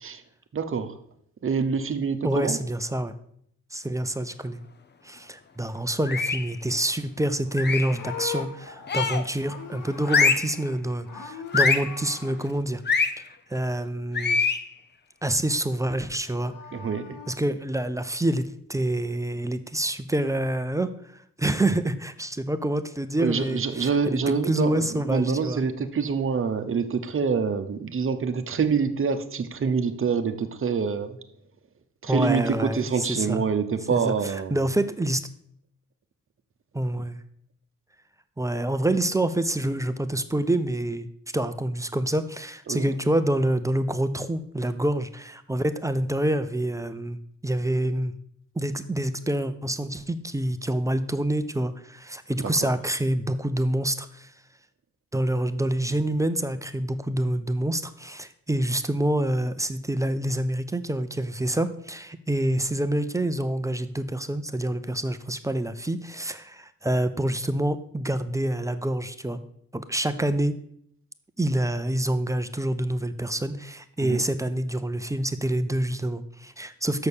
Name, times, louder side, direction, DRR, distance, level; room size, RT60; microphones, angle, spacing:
voice 1, 0.5-0.9 1.4-2.6 16.7-17.2 23.2-31.2 32.0-34.6 42.7-42.9 52.4-52.7 74.0-74.2, right 5 dB, 40° right, 9 dB, 0.9 m, -26 dB
voice 2, 2.2-3.1 3.7-4.6 5.0-12.8 13.5-14.4 15.2-16.5 17.3-20.9 21.4-25.6 32.1-33.4 33.8-35.2 36.7-37.2 38.4-41.1 41.3-47.2 47.4-48.1 48.6-54.3 55.1-69.4 69.7-70.6 71.4-77.1, right 1 dB, 10° right, 11 dB, 0.6 m, -27 dB
sound 1, 6.0-6.5 7.6-8.0 8.9-9.3 10.1-10.5 11.5-11.9 12.8-13.1 14.1-14.6, left 4 dB, 35° left, 0.8 m, -23 dB
Livestock farm animals working animals, 7.4-10.8 11.1-12.4 16.1-17.3, left 6 dB, 90° left, 1.5 m, -39 dB
6.6 x 6.4 x 7.1 m, 0.68 s
cardioid pair, 110°, 31 cm